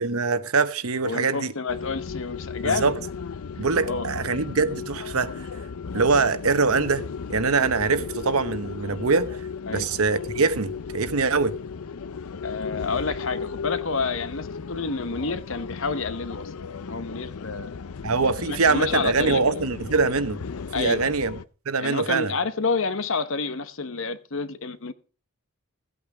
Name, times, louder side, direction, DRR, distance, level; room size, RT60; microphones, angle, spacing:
voice 1, 0.0-1.5 2.6-2.9 3.6-5.5 5.9-7.0 7.3-9.4 9.7-11.5 18.0-20.4 20.7-21.3 21.7-22.3, right 4 dB, 75° right, 1.0 m, -23 dB
voice 2, 1.0-2.9 3.8-4.1 9.7-9.9 12.4-16.5 16.8-17.7 18.5-19.6 20.7-21.2 21.8-24.9, left 4 dB, 65° left, 1.0 m, -29 dB
sound 1, 1.7-21.4, left 5 dB, 80° left, 0.5 m, -35 dB
15.5 x 8.6 x 4.9 m
head